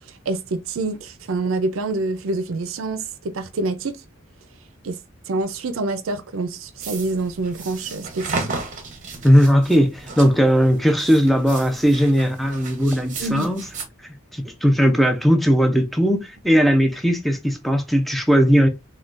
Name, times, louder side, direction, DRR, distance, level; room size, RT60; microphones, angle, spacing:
voice 1, 0.3-4.0 4.8-5.0 5.3-8.5 13.2-13.5, right 3 dB, 70° right, 0.5 m, -26 dB
sound 1, 6.8-13.8, right 3 dB, 40° right, 0.8 m, -34 dB
voice 2, 9.2-13.6 14.3-18.7, equal, ahead, 0.4 m, -18 dB
3.5 x 2.3 x 2.4 m
head